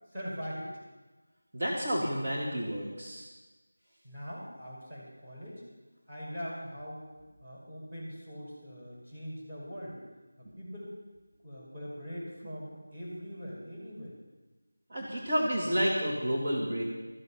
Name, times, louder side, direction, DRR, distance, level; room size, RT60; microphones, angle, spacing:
voice 1, 0.1-0.7 4.0-5.6 6.1-7.1 7.4-10.0 10.4-10.9 11.4-14.2, equal, 15° right, -5 dB, 5.6 m, -42 dB
voice 2, 1.5-3.2 14.9-16.8, equal, 40° right, -5 dB, 2.5 m, -30 dB
14.0 x 12.5 x 5.8 m, 1.2 s
figure-of-eight pair, 165°, 0 cm